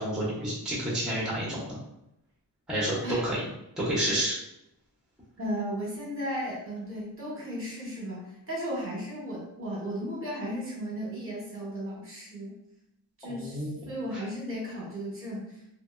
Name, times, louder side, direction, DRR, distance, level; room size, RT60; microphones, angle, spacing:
voice 1, 0.0-1.8 2.7-3.4 3.8-4.3 13.2-13.8 14.1-14.2, right 1 dB, ahead, -5 dB, 0.6 m, -29 dB
voice 2, 5.4-12.5 13.2-15.6, equal, 35° right, -4 dB, 0.8 m, -35 dB
2.6 x 2.1 x 2.4 m, 0.83 s
wide cardioid pair, 135°, 40 cm